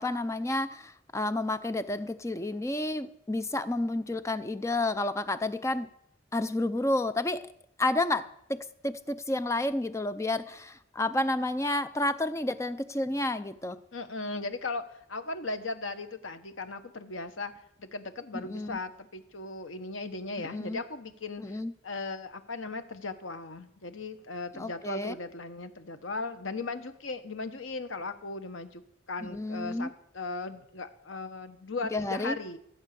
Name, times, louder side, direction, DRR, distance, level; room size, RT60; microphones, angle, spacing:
voice 1, 0.0-5.9 6.3-7.5 7.8-13.8 18.3-18.8 20.4-20.8 21.4-21.7 24.5-25.1 29.2-29.9 31.9-32.4, left 2 dB, 15° left, 12 dB, 0.5 m, -30 dB
voice 2, 13.9-17.5 17.8-28.8 29.1-32.6, left 3 dB, 85° left, 9 dB, 1.3 m, -37 dB
15.0 x 8.4 x 6.8 m, 0.75 s
head